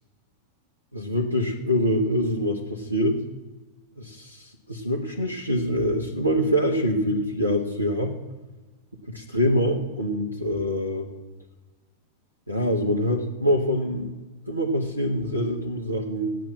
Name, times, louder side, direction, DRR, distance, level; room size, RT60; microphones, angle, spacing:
voice 1, 0.9-3.2 4.0-8.1 9.1-11.1 12.5-14.1 14.5-16.4, equal, 85° right, 0 dB, 1.4 m, -25 dB
14.5 x 9.2 x 7.7 m, 1.2 s
figure-of-eight pair, 90°, 0 cm